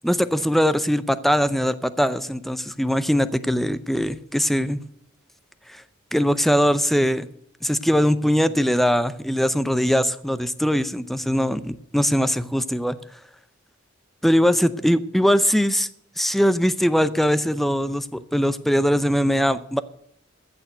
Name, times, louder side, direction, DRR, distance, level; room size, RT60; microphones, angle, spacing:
voice 1, 0.0-4.8 5.7-5.8 6.1-7.3 7.6-13.0 14.2-15.9 16.2-19.8, equal, ahead, 14 dB, 0.6 m, -21 dB
14.5 x 6.9 x 7.9 m, 0.74 s
head